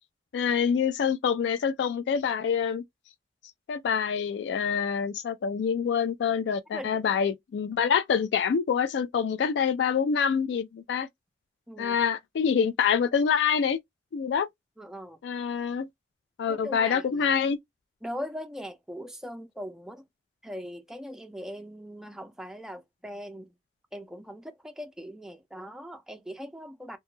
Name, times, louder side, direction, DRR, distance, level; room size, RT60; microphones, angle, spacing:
voice 1, 0.3-2.8 3.7-11.1 11.8-13.8 14.1-14.5 15.2-15.9 16.4-17.6, left 7 dB, 85° left, 0.3 m, -26 dB
voice 2, 6.7-7.0 11.7-12.0 14.8-15.2 16.5-17.4 18.0-20.0 20.4-23.5 23.9-27.0, equal, 5° right, 0.4 m, -40 dB
2.2 x 2.1 x 3.0 m
head